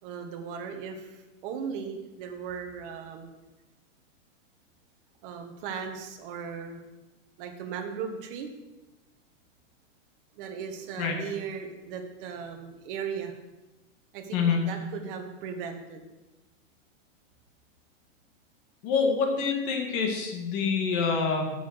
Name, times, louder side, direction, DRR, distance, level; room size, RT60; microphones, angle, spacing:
voice 1, 0.0-3.3 5.2-6.8 7.4-8.5 10.4-13.3 14.1-16.0, right 6 dB, 45° right, 3 dB, 1.6 m, -37 dB
voice 2, 18.8-21.5, left 5 dB, 35° left, 2 dB, 2.1 m, -26 dB
8.2 x 7.0 x 6.4 m, 1.1 s
supercardioid pair, 150°, 38 cm